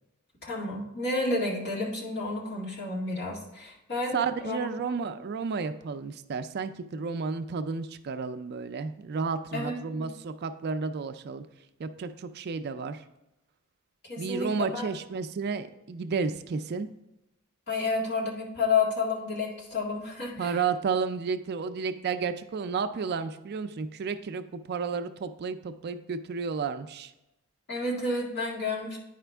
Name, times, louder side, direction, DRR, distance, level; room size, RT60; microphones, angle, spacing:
voice 1, 0.4-4.7 9.5-10.1 14.0-14.9 17.7-20.6 27.7-29.0, left 3 dB, 50° left, -3 dB, 1.9 m, -30 dB
voice 2, 4.1-11.5 11.8-13.0 14.2-16.9 20.4-27.1, right 5 dB, 50° right, 10 dB, 0.4 m, -32 dB
9.8 x 5.0 x 3.4 m, 0.93 s
head